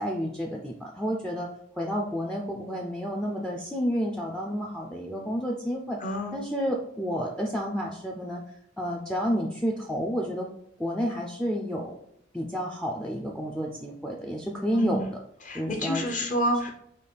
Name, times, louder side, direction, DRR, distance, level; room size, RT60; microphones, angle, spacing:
voice 1, 0.0-1.5 1.8-6.0 6.3-8.4 8.8-10.5 10.8-12.0 12.3-15.2 15.5-16.0, equal, 5° left, 0 dB, 0.3 m, -30 dB
voice 2, 6.0-6.4 14.7-15.1 15.4-16.7, equal, 40° left, 2 dB, 0.6 m, -29 dB
5.4 x 2.3 x 3.3 m, 0.71 s
head